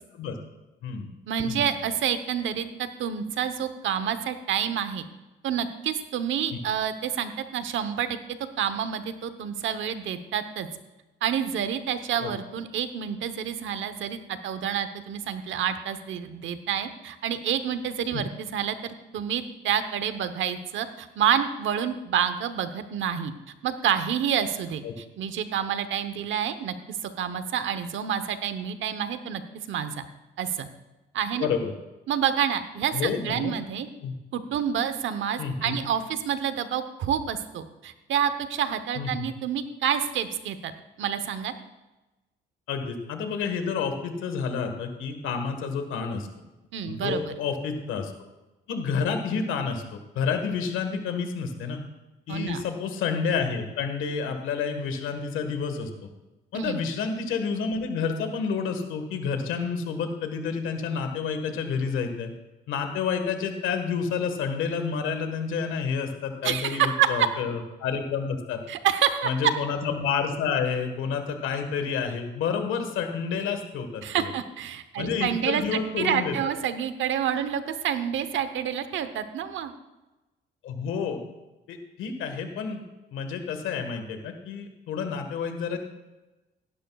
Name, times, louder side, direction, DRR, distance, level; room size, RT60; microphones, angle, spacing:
voice 1, 1.3-5.1 5.4-8.2 8.6-10.7 11.2-23.3 23.6-29.4 29.7-30.0 30.4-30.7 31.1-31.5 32.1-33.9 34.3-40.7 41.0-41.5 46.7-47.3 52.3-52.6 56.5-56.8 66.4-67.3 68.7-69.3 74.0-79.7, right 9 dB, 75° right, 10 dB, 1.0 m, -28 dB
voice 2, 31.4-31.7 32.9-33.5 34.0-34.2 35.4-35.8 38.9-39.3 42.7-46.3 46.9-48.1 48.7-49.8 50.1-51.8 52.3-55.9 56.5-62.3 62.7-68.6 69.2-74.3 75.0-76.4 80.6-81.2 81.7-82.8 83.1-85.8, left 6 dB, 85° left, 7 dB, 1.5 m, -29 dB
17.0 x 11.5 x 2.4 m, 1.1 s
cardioid pair, 90°, 20 cm